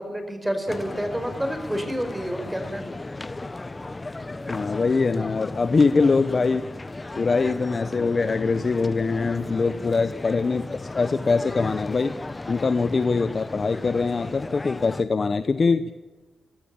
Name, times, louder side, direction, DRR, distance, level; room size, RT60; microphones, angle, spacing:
voice 1, 0.0-2.8 9.6-9.7, equal, 10° right, 7 dB, 4.9 m, -29 dB
sound 1, 0.7-15.0, left 2 dB, 25° left, 1.1 m, -36 dB
voice 2, 4.5-6.7 7.2-12.2 12.5-15.9, left 4 dB, 45° left, 11 dB, 0.9 m, -23 dB
25.5 x 14.0 x 8.7 m, 1.3 s
cardioid pair, 80°, 0 cm